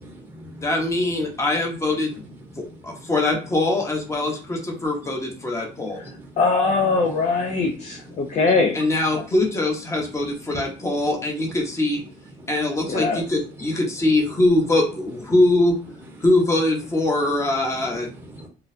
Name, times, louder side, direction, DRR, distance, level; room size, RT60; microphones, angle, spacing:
voice 1, 0.0-0.7 2.1-2.2 2.5-3.1 5.0-6.4 8.2-8.6 9.9-10.7 11.0-11.2 11.4-11.6 12.3-12.9 13.1-13.3 17.6-18.5, equal, 10° right, 0 dB, 1.0 m, -42 dB
voice 2, 0.6-2.2 2.8-6.0 8.7-12.0 12.5-15.7 16.2-18.1, left 2 dB, 15° left, 1 dB, 1.1 m, -22 dB
voice 3, 6.4-8.8 9.1-9.2 12.9-13.2, left 4 dB, 40° left, 2 dB, 0.6 m, -21 dB
3.8 x 2.3 x 2.7 m, 0.39 s
cardioid pair, 110°, 17 cm